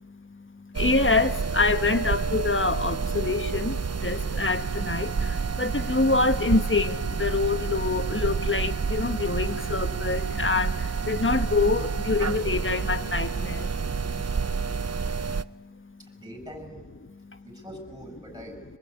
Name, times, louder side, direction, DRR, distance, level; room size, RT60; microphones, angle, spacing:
voice 1, 0.0-16.2 17.1-17.4, left 3 dB, 25° left, 10 dB, 1.7 m, -27 dB
sound 1, 0.7-15.4, right 5 dB, 35° right, 0.8 m, -29 dB
voice 2, 16.1-16.8 17.4-18.6, equal, 10° right, 5 dB, 7.4 m, -43 dB
25.5 x 22.5 x 9.7 m, 1.3 s
wide cardioid pair, 60°, 48 cm